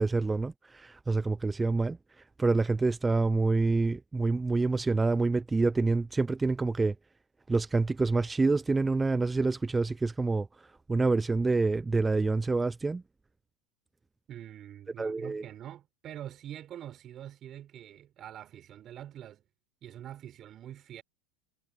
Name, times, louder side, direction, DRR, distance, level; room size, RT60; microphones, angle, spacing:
voice 1, 0.0-6.9 7.5-13.0 15.0-15.4, right 3 dB, 15° right, 0.4 m, -27 dB
voice 2, 14.3-19.4 19.8-21.0, right 11 dB, 40° right, 7.1 m, -45 dB
hypercardioid pair, 95°, 0 cm